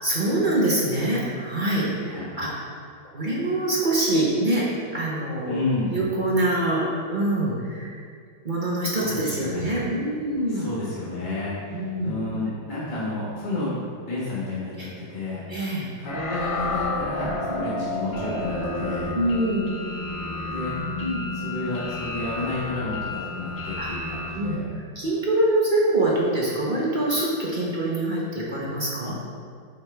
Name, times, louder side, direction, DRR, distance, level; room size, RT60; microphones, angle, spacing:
voice 1, 0.0-2.5 3.1-4.6 4.9-5.6 5.9-8.0 8.4-10.7 11.7-12.2 14.8-14.9 15.5-15.9 17.5-17.8 19.1-19.7 21.0-21.2 23.8-23.9 24.3-29.1, right 1 dB, 35° right, -5 dB, 0.8 m, -25 dB
voice 2, 5.5-5.9 8.9-9.7 10.5-13.7 14.0-15.4 16.0-19.1 20.5-20.7 21.3-24.7, left 2 dB, 30° left, -9 dB, 1.4 m, -31 dB
sound 1, 16.1-24.3, left 2 dB, 50° left, 0.6 m, -31 dB
8.3 x 4.7 x 3.3 m, 2.1 s
omnidirectional pair, 1.9 m